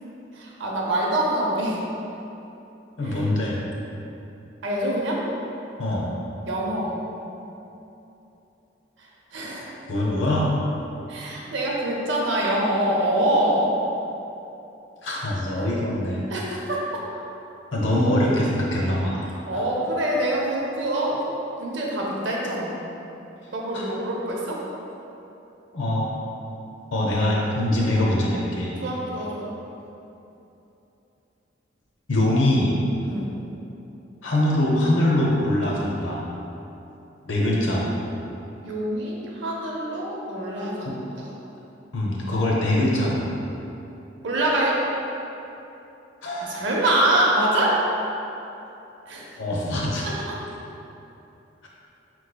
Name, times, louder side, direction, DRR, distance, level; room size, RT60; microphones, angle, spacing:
voice 1, 0.3-1.8 3.1-3.2 4.6-5.2 6.5-7.0 9.3-9.7 11.1-13.7 16.3-17.0 19.5-21.2 21.6-22.8 23.5-24.6 28.8-29.5 33.0-33.3 38.6-40.7 41.2-41.3 44.2-44.8 46.4-47.9 49.1-49.3 50.0-50.1, right 1 dB, 75° right, -3 dB, 0.6 m, -25 dB
voice 2, 3.0-3.6 5.8-6.1 9.9-10.5 15.0-16.2 17.7-19.3 19.5-19.6 23.7-23.9 25.7-26.1 26.9-28.7 32.1-32.7 34.2-36.2 37.3-38.0 40.8-41.0 41.9-43.2 46.2-46.6 49.4-50.1 51.6-51.7, left 1 dB, 90° left, -4 dB, 0.8 m, -23 dB
5.9 x 3.1 x 2.2 m, 2.9 s
head